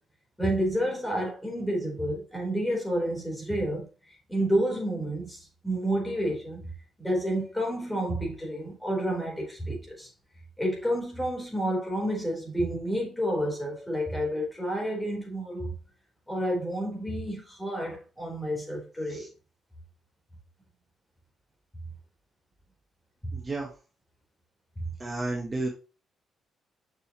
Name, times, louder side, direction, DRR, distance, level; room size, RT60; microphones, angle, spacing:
voice 1, 0.4-6.7 7.0-10.1 10.6-15.7 16.3-19.3 23.2-23.3, equal, 10° left, 4.0 m, -30 dB
voice 2, 23.3-23.7 25.0-25.7, right 2 dB, 25° right, 1.7 m, -32 dB
6.8 x 6.5 x 3.0 m
cardioid pair, 90°, 0 cm